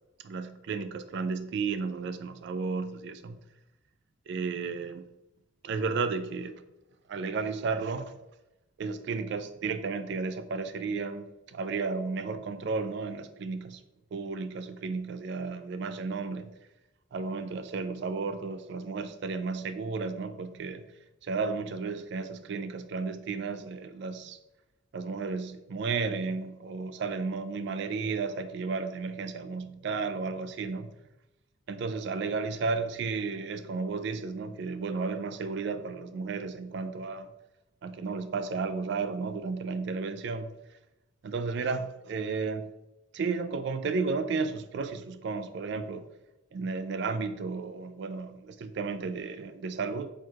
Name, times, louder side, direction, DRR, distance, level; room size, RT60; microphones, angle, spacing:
voice 1, 0.2-3.4 4.3-5.0 5.6-6.5 7.1-8.1 8.8-13.8 14.1-16.5 17.1-20.8 21.2-24.4 24.9-30.9 31.7-37.3 37.8-40.6 41.2-42.7 43.1-46.0 46.5-50.1, right 4 dB, 55° right, 0.3 m, -33 dB
4.5 x 4.5 x 2.3 m
head